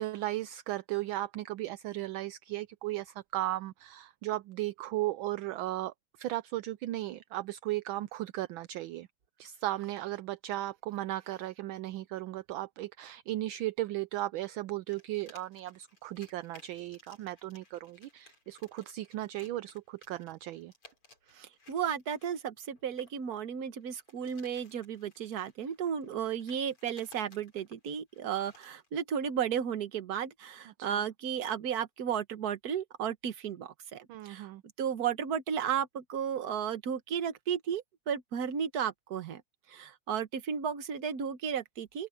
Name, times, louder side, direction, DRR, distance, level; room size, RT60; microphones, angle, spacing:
voice 1, 0.0-9.1 9.4-20.7 30.9-31.0 34.1-34.6, right 16 dB, 75° right, 1.3 m, -36 dB
sound 1, 14.9-23.2 23.8-28.9, left 3 dB, 90° left, 7.5 m, -60 dB
voice 2, 21.3-34.5 34.8-39.4 39.7-42.1, right 8 dB, 50° right, 1.5 m, -34 dB
open air
omnidirectional pair, 2.4 m